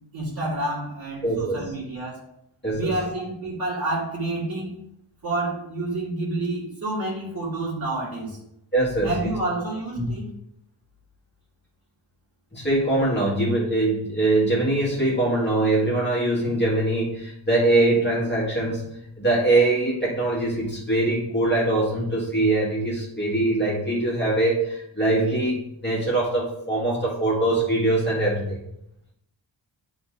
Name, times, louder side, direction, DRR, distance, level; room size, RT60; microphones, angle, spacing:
voice 1, 0.1-2.2 2.8-4.7 5.2-8.4 9.0-10.3, right 2 dB, 45° right, -11 dB, 2.4 m, -29 dB
voice 2, 1.2-1.7 2.6-3.0 8.7-9.3 10.0-10.1 12.5-18.9 19.2-28.6, right 2 dB, 20° left, -7 dB, 2.1 m, -22 dB
11.5 x 4.1 x 2.7 m, 0.81 s
wide cardioid pair, 125°, 48 cm